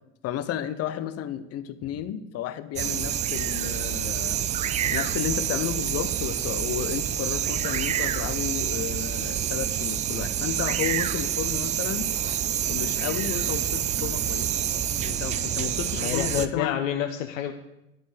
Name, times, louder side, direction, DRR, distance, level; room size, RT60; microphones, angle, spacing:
voice 1, 0.2-4.4 4.9-12.1 12.7-14.5 15.0-16.8, left 10 dB, 40° left, 12 dB, 0.8 m, -32 dB
sound 1, 2.8-16.5, right 10 dB, 20° right, 0.3 m, -27 dB
voice 2, 16.0-17.5, left 10 dB, 80° left, 6 dB, 0.8 m, -28 dB
11.5 x 4.4 x 7.8 m, 0.91 s
hypercardioid pair, 95°, 39 cm